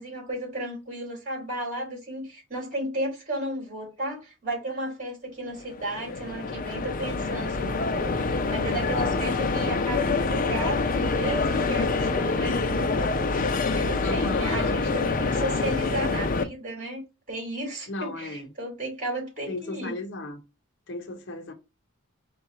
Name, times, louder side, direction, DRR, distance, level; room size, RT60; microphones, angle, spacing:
voice 1, 0.0-17.0 17.3-20.0, right 1 dB, 40° right, 2.7 m, -34 dB
sound 1, 5.6-16.4, left 3 dB, 40° left, 0.5 m, -26 dB
voice 2, 14.0-14.8 17.9-18.5 19.5-20.4 20.9-21.5, left 2 dB, 60° left, 0.8 m, -35 dB
4.7 x 2.3 x 4.1 m
head